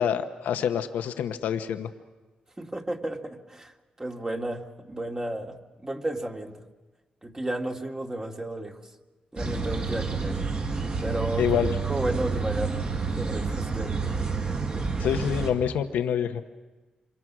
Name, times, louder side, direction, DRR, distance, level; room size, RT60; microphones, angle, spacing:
voice 1, 0.0-1.9 11.4-11.7 15.0-16.4, left 8 dB, 85° left, 8 dB, 1.1 m, -26 dB
voice 2, 2.6-3.7 4.0-6.6 7.2-8.8 9.3-10.4 11.0-11.5 11.8-12.8 13.2-14.1, right 1 dB, 20° right, 2 dB, 2.3 m, -33 dB
sound 1, 9.4-15.5, right 4 dB, 50° right, 5.5 m, -29 dB
27.5 x 25.0 x 6.2 m, 1.2 s
cardioid pair, 60°, 3 cm